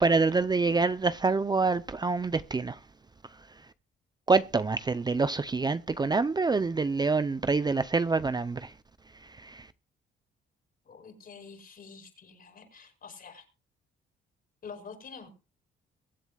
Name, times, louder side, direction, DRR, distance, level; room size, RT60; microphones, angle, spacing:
voice 1, 0.0-2.7 4.3-8.6, right 4 dB, 20° right, 0.5 m, -26 dB
voice 2, 10.8-13.4 14.6-15.3, left 5 dB, 50° left, 4.9 m, -47 dB
23.0 x 8.0 x 2.3 m
cardioid pair, 90°, 20 cm